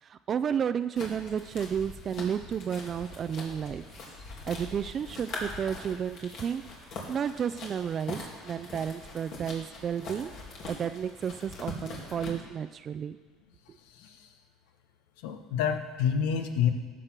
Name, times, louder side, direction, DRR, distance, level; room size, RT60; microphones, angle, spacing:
voice 1, 0.0-3.8 4.4-10.3 10.7-13.2, right 8 dB, 40° right, 12 dB, 0.4 m, -32 dB
sound 1, 1.0-12.3, left 2 dB, 60° left, 2.6 m, -42 dB
voice 2, 15.2-16.7, left 8 dB, 80° left, 7 dB, 1.1 m, -28 dB
13.5 x 6.3 x 5.9 m, 1.3 s
supercardioid pair, 95°, 0 cm